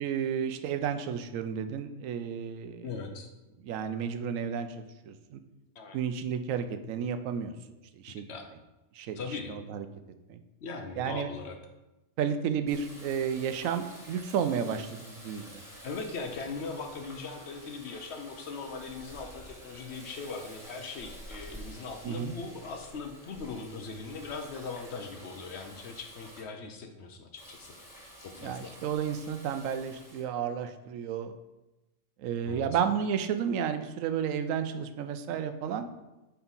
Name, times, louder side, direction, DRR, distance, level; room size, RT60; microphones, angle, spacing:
voice 1, 0.0-2.9 3.6-5.4 5.9-7.5 8.0-8.3 8.9-9.2 9.5-9.8 10.3-10.4 11.0-11.3 12.2-15.6 22.0-22.3 28.4-31.3 32.2-35.9, right 7 dB, 90° right, 9 dB, 1.0 m, -32 dB
voice 2, 2.8-3.3 5.8-6.0 8.1-8.5 9.2-9.5 10.6-11.6 15.8-28.8 32.4-32.6, left 4 dB, 65° left, 5 dB, 0.9 m, -40 dB
Water tap faucet, 12.6-26.4 27.4-30.2, equal, ahead, 1.4 m, -50 dB
4.5 x 4.3 x 5.3 m, 1.0 s
omnidirectional pair, 1.3 m